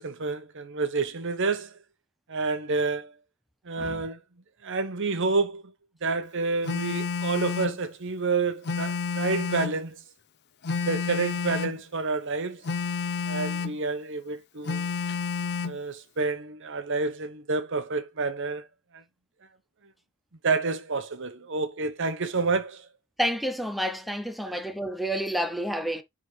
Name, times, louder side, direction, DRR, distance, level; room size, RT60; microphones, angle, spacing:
voice 1, 0.0-1.7 2.3-3.1 3.6-4.2 4.6-5.6 6.0-10.0 10.9-12.7 13.3-14.9 15.6-18.6 18.9-19.0 20.4-22.9 24.4-24.6, right 4 dB, 60° right, 1.0 m, -29 dB
voice 2, 3.8-4.1 23.2-26.0, equal, ahead, 0.5 m, -29 dB
Telephone, 6.6-7.8 8.6-9.8 10.6-11.8 12.6-13.8 14.7-15.8, left 5 dB, 50° left, 0.6 m, -30 dB
9.8 x 3.7 x 3.2 m
head